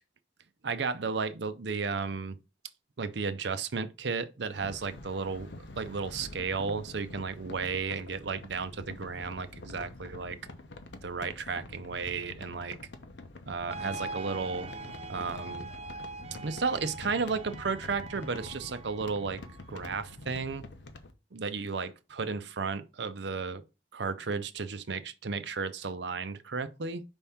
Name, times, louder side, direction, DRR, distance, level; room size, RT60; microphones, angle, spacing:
voice 1, 0.6-2.4 3.0-10.4 11.0-12.8 13.5-14.7 15.1-15.7 16.4-19.4 19.7-20.7 21.3-23.6 23.9-27.0, right 4 dB, 75° right, 0.6 m, -33 dB
sound 1, 4.4-21.1, left 2 dB, 80° left, 0.9 m, -46 dB
sound 2, 13.7-20.1, right 3 dB, 35° right, 0.5 m, -43 dB
5.4 x 3.6 x 5.6 m
head